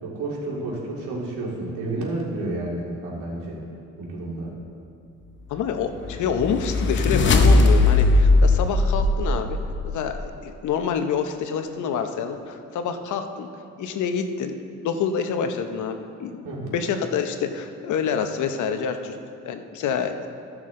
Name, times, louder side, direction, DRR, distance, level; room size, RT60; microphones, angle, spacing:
voice 1, 0.0-3.6 4.0-4.5 16.4-16.7, right 2 dB, 90° right, -3 dB, 2.2 m, -30 dB
voice 2, 5.5-9.6 9.8-13.5 13.8-19.2 19.5-20.3, left 6 dB, 75° left, 7 dB, 0.8 m, -27 dB
sound 1, 5.8-10.0, left 2 dB, 40° left, 0.8 m, -19 dB
14.5 x 6.1 x 3.7 m, 2.5 s
cardioid pair, 90°, 30 cm